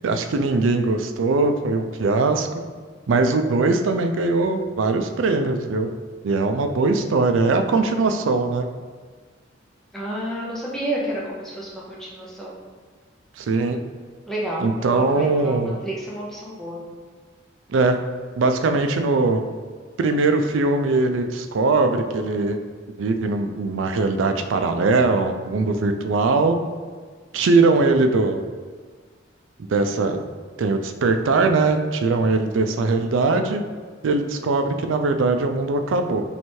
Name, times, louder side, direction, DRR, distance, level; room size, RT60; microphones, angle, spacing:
voice 1, 0.0-2.5 3.1-5.9 6.2-8.7 13.4-13.8 14.6-15.8 17.7-18.0 18.4-19.4 20.0-22.6 23.0-26.6 27.3-28.4 29.7-30.2 30.6-33.6 34.0-36.2, right 3 dB, 90° right, 7 dB, 0.4 m, -21 dB
voice 2, 9.9-12.5 14.3-16.8, right 1 dB, ahead, -6 dB, 0.6 m, -30 dB
3.2 x 3.1 x 4.4 m, 1.6 s
head